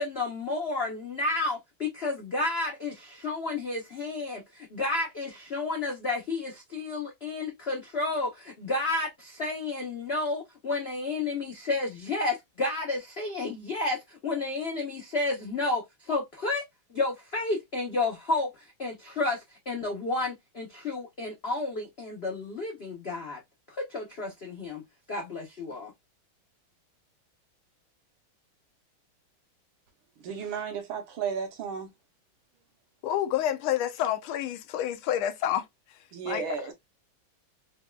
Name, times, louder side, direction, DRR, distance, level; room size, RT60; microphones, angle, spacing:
voice 1, 0.0-16.6 16.9-23.4 23.8-24.8 25.1-25.9, left 2 dB, 65° left, 0.6 m, -31 dB
voice 2, 30.2-31.9 36.1-36.7, right 6 dB, 75° right, 1.7 m, -33 dB
voice 3, 33.0-36.4, left 11 dB, 85° left, 1.5 m, -29 dB
5.1 x 2.3 x 2.2 m
omnidirectional pair, 2.3 m